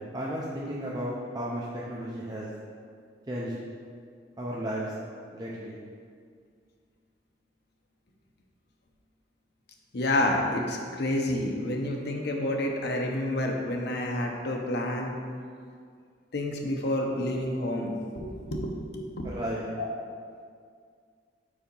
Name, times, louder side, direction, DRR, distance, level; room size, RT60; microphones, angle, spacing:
voice 1, 0.1-2.5 3.3-3.5 4.4-4.9 5.3-5.8 19.2-19.6, equal, 20° right, -6 dB, 0.6 m, -34 dB
voice 2, 9.9-15.2 16.3-19.3 19.8-19.9, left 1 dB, 65° left, 1 dB, 0.8 m, -29 dB
5.0 x 4.0 x 5.3 m, 2.1 s
head